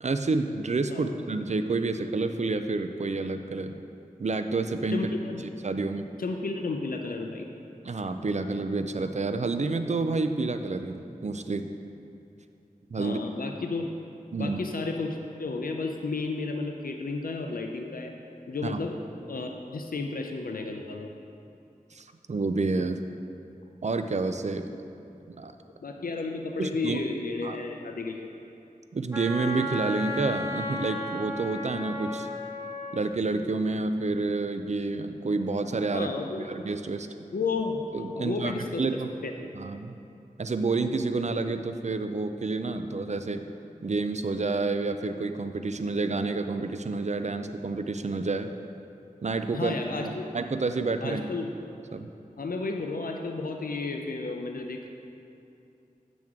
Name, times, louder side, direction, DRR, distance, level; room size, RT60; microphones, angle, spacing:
voice 1, 0.0-3.8 4.2-5.1 5.6-6.1 7.8-11.7 12.9-13.2 14.3-14.6 18.6-18.8 21.9-23.0 23.8-24.7 25.4-25.6 26.6-27.0 27.4-27.6 28.9-32.3 32.9-36.1 36.5-37.1 37.9-38.5 38.8-39.1 39.5-40.0 40.4-43.5 43.8-48.5 49.2-51.2 51.9-52.1, right 3 dB, 50° right, 8 dB, 0.4 m, -29 dB
voice 2, 4.9-5.5 6.2-7.5 13.0-13.9 14.4-18.1 18.5-19.0 19.3-21.1 25.8-28.3 35.9-36.5 37.3-37.8 38.1-38.8 39.2-39.3 49.5-50.3 51.0-51.5 52.4-54.9, left 3 dB, 80° left, 3 dB, 0.5 m, -32 dB
Wind instrument woodwind instrument, 29.1-33.0, left 1 dB, 20° right, 1.1 m, -34 dB
9.0 x 6.0 x 3.6 m, 2.7 s
wide cardioid pair, 45°, 15 cm